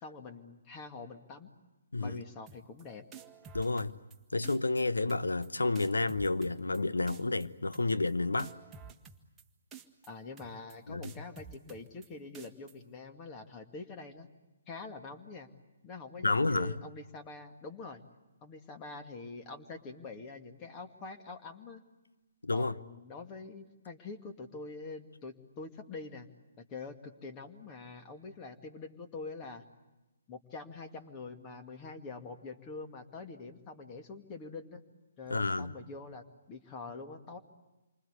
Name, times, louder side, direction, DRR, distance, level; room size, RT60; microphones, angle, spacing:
voice 1, 0.0-1.5 2.0-3.0 10.1-14.3 14.7-15.5 15.8-18.0 18.4-21.8 22.5-26.3 26.6-29.6 30.3-34.8 35.2-37.4, left 3 dB, 25° left, 2.2 m, -45 dB
sound 1, 2.5-2.8 3.1-4.2 4.4-4.8 5.1-5.5 5.7-6.8 7.1-7.5 7.7-8.1 8.4-9.4 9.7-10.1 10.4-10.7 11.0-12.1 12.3-12.7, right 7 dB, 10° right, 1.7 m, -50 dB
voice 2, 3.5-4.0 4.3-8.5 10.9-11.0 16.2-16.7 22.4-22.7 35.3-35.7, left 3 dB, 75° left, 1.0 m, -30 dB
28.5 x 25.0 x 8.2 m
figure-of-eight pair, 130°, 0 cm